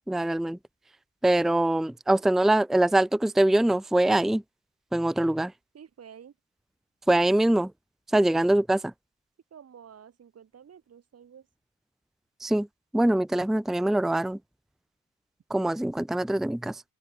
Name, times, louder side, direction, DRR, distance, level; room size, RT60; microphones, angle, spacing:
voice 1, 0.1-0.6 1.2-4.4 4.9-5.5 7.1-7.7 8.1-8.9 12.4-12.7 12.9-14.4 15.5-16.8, right 1 dB, ahead, 0.7 m, -23 dB
voice 2, 5.7-6.3 9.5-11.5, right 8 dB, 45° right, 2.2 m, -50 dB
supercardioid pair, 70°, 33 cm